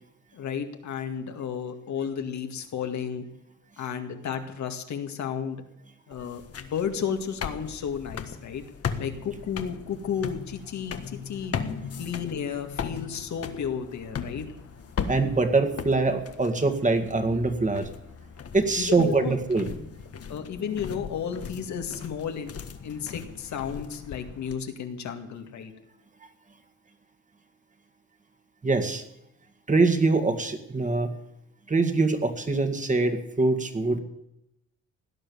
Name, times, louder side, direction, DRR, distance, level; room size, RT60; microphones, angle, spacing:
voice 1, 0.3-3.3 3.8-5.6 6.1-8.7 9.0-11.6 12.0-14.5 18.8-19.4 20.3-22.5 22.8-25.7, left 7 dB, 70° left, 5 dB, 2.1 m, -33 dB
sound 1, 6.1-24.5, left 6 dB, 50° left, 1.5 m, -38 dB
voice 2, 15.1-17.9 18.5-19.7 28.6-29.0 29.7-31.1 31.7-34.0, right 3 dB, 25° right, 6 dB, 2.1 m, -24 dB
17.5 x 10.0 x 7.1 m, 0.84 s
cardioid pair, 90°, 30 cm